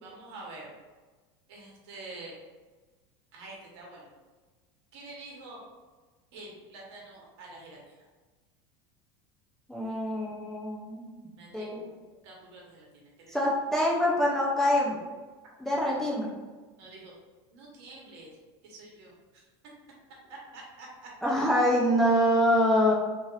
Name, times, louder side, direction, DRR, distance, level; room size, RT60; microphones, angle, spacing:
voice 1, 0.0-0.7 1.5-2.4 3.3-4.1 4.9-5.6 6.3-7.9 11.4-13.4 15.7-16.1 16.8-17.1 17.5-18.3 18.6-19.4 20.3-21.1, right 2 dB, 75° right, -2 dB, 1.0 m, -47 dB
voice 2, 9.7-11.1 11.5-11.9 13.3-15.0 15.6-16.3 21.2-22.9, equal, 5° left, -5 dB, 0.4 m, -25 dB
2.8 x 2.4 x 3.1 m, 1.3 s
supercardioid pair, 155°, 14 cm